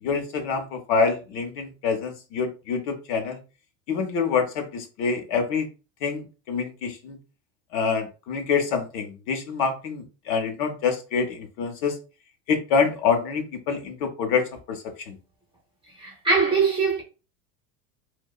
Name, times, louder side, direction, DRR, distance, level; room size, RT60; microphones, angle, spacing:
voice 1, 0.0-3.4 3.9-5.7 6.0-7.2 7.7-12.0 12.5-15.2, left 5 dB, 50° left, 0.6 m, -26 dB
voice 2, 16.0-17.0, right 4 dB, 15° right, 0.4 m, -22 dB
2.7 x 2.1 x 2.3 m
cardioid pair, 165°, 37 cm